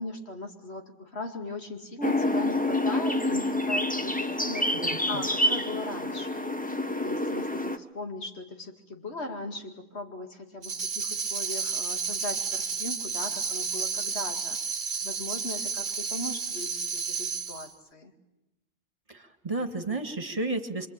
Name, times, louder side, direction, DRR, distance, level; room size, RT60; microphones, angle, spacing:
voice 1, 0.0-6.5 7.0-14.6 15.0-18.1, left 2 dB, 70° left, 3 dB, 2.7 m, -38 dB
sound 1, 2.0-7.8, left 1 dB, 10° left, 0.9 m, -28 dB
voice 2, 4.7-5.2 19.1-20.9, right 2 dB, 30° right, 7 dB, 2.0 m, -32 dB
Tambourine, 10.6-17.7, right 5 dB, 45° right, 1.2 m, -31 dB
25.5 x 25.5 x 8.9 m, 0.97 s
omnidirectional pair, 1.2 m